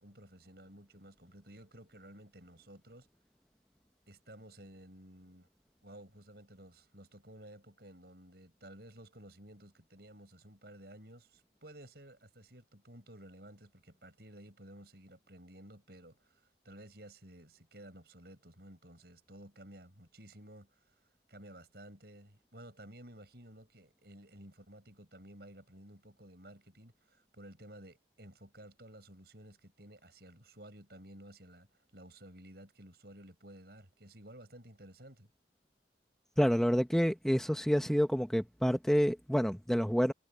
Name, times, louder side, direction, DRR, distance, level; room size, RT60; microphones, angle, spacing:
voice 1, 0.0-3.1 4.1-5.5 5.8-20.8 21.3-35.3, right 1 dB, 55° right, 7.8 m, -54 dB
voice 2, 36.4-40.1, equal, 5° left, 0.9 m, -28 dB
head